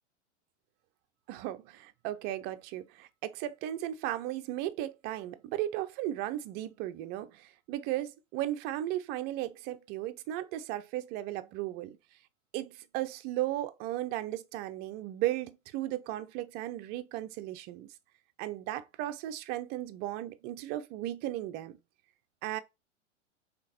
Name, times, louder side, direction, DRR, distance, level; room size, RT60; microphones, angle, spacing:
voice 1, 1.3-12.0 12.5-17.9 18.4-21.8 22.4-22.6, right 14 dB, 30° right, 0.4 m, -36 dB
3.8 x 3.5 x 2.9 m
hypercardioid pair, 110°, 37 cm